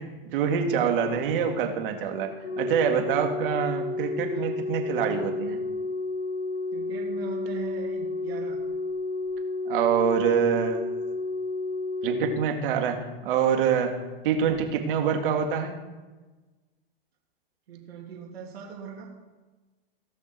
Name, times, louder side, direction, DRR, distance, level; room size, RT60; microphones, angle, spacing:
voice 1, 0.3-5.6 9.7-10.9 12.0-14.0 14.2-15.8, right 7 dB, 60° right, 4 dB, 2.1 m, -25 dB
Organ, 2.4-13.3 14.4-14.6, left 3 dB, 45° left, 3.4 m, -31 dB
voice 2, 6.7-8.6 17.7-19.1, right 6 dB, 85° right, -3 dB, 2.8 m, -40 dB
17.0 x 6.1 x 4.6 m, 1.2 s
hypercardioid pair, 135°, 30 cm